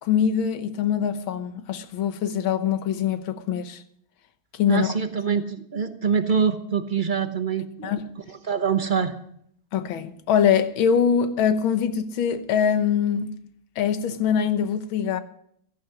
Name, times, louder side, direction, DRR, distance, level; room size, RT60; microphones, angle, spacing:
voice 1, 0.0-3.8 4.5-4.9 7.8-8.1 9.7-13.3 13.8-15.2, left 8 dB, 85° left, 1.9 m, -23 dB
voice 2, 4.7-7.9 8.3-9.1, right 6 dB, 35° right, 0.8 m, -25 dB
16.0 x 14.5 x 5.1 m
omnidirectional pair, 2.1 m